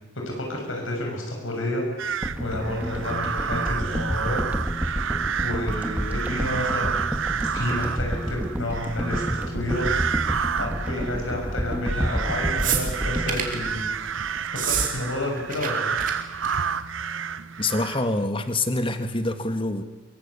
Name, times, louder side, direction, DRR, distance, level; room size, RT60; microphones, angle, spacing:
voice 1, 0.2-1.8 2.4-4.5 5.4-7.0 7.4-9.9 10.6-13.9 14.5-16.0, left 1 dB, 80° left, 0 dB, 7.0 m, -30 dB
sound 1, 2.0-18.3, right 7 dB, 75° right, 0.8 m, -30 dB
sound 2, 2.2-14.5 14.9-15.0, equal, 10° right, 1.7 m, -30 dB
sound 3, 12.6-13.6 14.5-14.9 15.2-15.7 16.0-16.1 16.4-16.7 17.7-17.8, right 8 dB, 45° right, 3.4 m, -27 dB
voice 2, 17.6-19.8, left 2 dB, 25° left, 8 dB, 1.7 m, -25 dB
24.0 x 22.5 x 8.4 m, 1.2 s
head